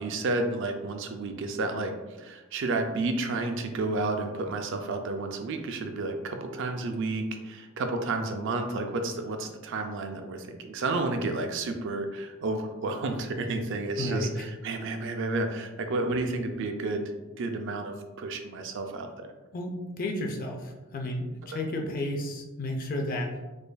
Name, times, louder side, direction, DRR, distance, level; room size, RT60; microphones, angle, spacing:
voice 1, 0.0-17.1 17.4-19.3 21.5-21.6, right 2 dB, 60° right, 5 dB, 0.4 m, -31 dB
voice 2, 14.0-14.5 19.5-23.4, left 1 dB, 40° left, 2 dB, 0.5 m, -32 dB
5.0 x 2.5 x 2.2 m, 1.2 s
head